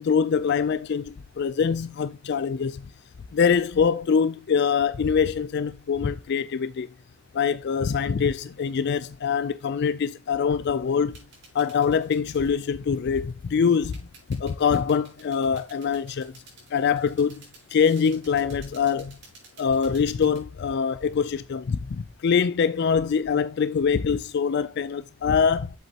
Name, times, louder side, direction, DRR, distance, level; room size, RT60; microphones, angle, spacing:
voice 1, 0.0-2.9 3.3-6.9 7.3-11.1 11.5-14.0 14.3-16.3 16.7-17.4 17.7-19.2 19.6-25.7, left 6 dB, 50° left, 0.3 m, -24 dB
sound 1, 11.1-20.4, right 3 dB, 55° right, 5.3 m, -53 dB
8.0 x 7.6 x 2.8 m
head